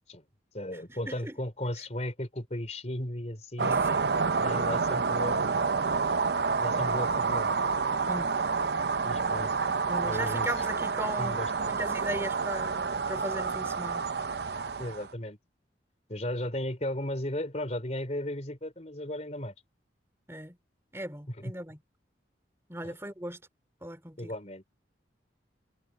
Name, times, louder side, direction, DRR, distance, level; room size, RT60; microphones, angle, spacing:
voice 1, 0.5-3.8 4.4-5.7 6.6-7.6 9.0-9.6 10.0-10.5 11.2-11.5 14.8-15.4 16.1-19.5 21.3-21.5 22.8-23.0 24.2-24.6, left 1 dB, 35° left, 4.2 m, -35 dB
voice 2, 3.6-4.0 8.1-8.3 9.9-14.1 20.3-20.6 20.9-21.8 22.7-23.4 23.8-24.3, right 1 dB, 15° right, 3.1 m, -37 dB
sound 1, 3.6-15.1, right 5 dB, 60° right, 0.6 m, -29 dB
head